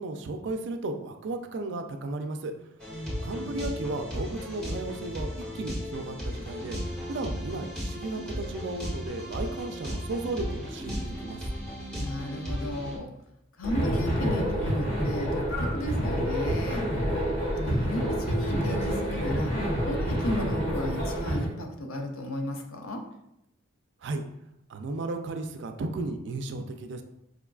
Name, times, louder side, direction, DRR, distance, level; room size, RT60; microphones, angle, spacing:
voice 1, 0.0-2.5 3.2-5.3 5.5-11.4 24.0-24.2 24.7-27.0, right 2 dB, 60° right, 6 dB, 0.3 m, -34 dB
sound 1, 2.8-13.0, equal, 5° left, 0.9 m, -35 dB
voice 2, 11.9-13.1 13.6-16.8 17.5-19.5 19.9-23.0, left 1 dB, 85° left, 3 dB, 0.5 m, -34 dB
sound 2, 13.6-21.5, equal, 55° left, 1.4 m, -28 dB
4.8 x 2.3 x 2.3 m, 0.80 s
head